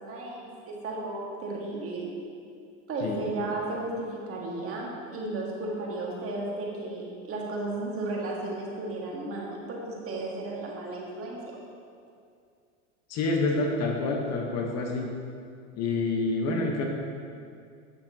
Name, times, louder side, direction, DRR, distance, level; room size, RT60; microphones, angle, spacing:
voice 1, 0.0-2.1 2.9-11.6, right 2 dB, 35° right, -2 dB, 1.7 m, -34 dB
voice 2, 3.0-3.3 13.1-15.1 15.7-16.8, left 3 dB, 40° left, 1 dB, 1.2 m, -27 dB
8.5 x 7.4 x 2.8 m, 2.3 s
hypercardioid pair, 90°, 39 cm